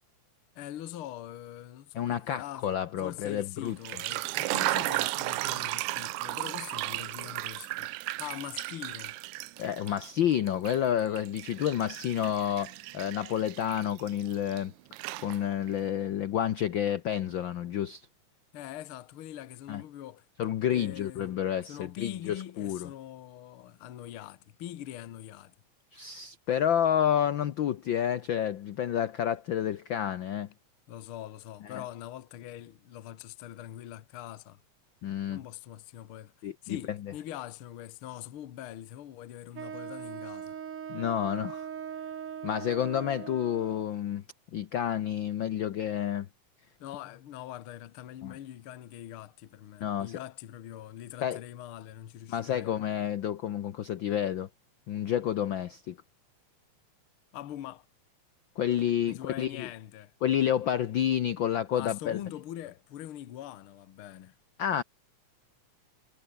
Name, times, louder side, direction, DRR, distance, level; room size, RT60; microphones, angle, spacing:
voice 1, 0.6-9.2 18.5-20.3 20.7-21.3 21.7-25.5 30.9-34.6 35.3-40.6 46.8-52.7 57.3-57.9 59.1-60.1 61.7-64.4, left 12 dB, 55° left, 1.7 m, -43 dB
voice 2, 1.9-3.8 9.6-14.7 15.2-18.1 19.7-19.8 20.4-22.9 25.9-30.5 31.7-31.8 35.0-35.4 36.4-37.1 40.9-41.7 42.4-44.2 44.5-46.3 48.2-48.3 49.8-50.2 51.2-51.4 52.3-54.5 54.9-56.0 58.6-59.7 60.2-62.2 64.6-64.8, left 10 dB, 80° left, 1.0 m, -29 dB
sound 1, 3.7-10.1 10.5-14.6 14.9-15.7, right 19 dB, 80° right, 2.0 m, -34 dB
Wind instrument woodwind instrument, 39.5-44.0, right 8 dB, 50° right, 2.5 m, -40 dB
omnidirectional pair, 3.4 m